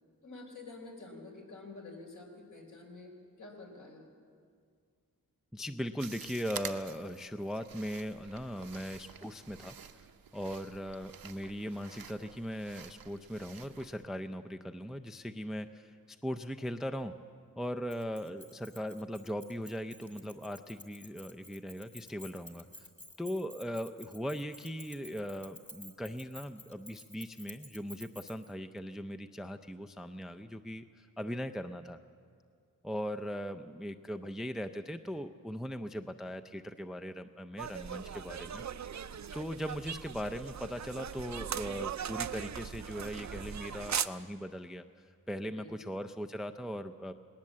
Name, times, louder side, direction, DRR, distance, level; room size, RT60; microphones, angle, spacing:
voice 1, 0.2-3.1 3.4-4.1 45.5-45.9, left 3 dB, 60° left, 1 dB, 4.4 m, -48 dB
voice 2, 5.5-9.8 10.3-17.1 17.6-22.9 23.2-32.0 32.8-38.6 38.9-39.0 39.3-47.1, equal, ahead, 7 dB, 0.5 m, -39 dB
sound 1, 6.0-14.1, right 8 dB, 80° right, 0.8 m, -49 dB
Keys jangling, 17.9-28.5, left 1 dB, 20° left, 2.2 m, -53 dB
sound 2, 37.6-44.1, right 8 dB, 55° right, 0.5 m, -39 dB
19.5 x 19.5 x 7.5 m, 2.2 s
wide cardioid pair, 120°, 35 cm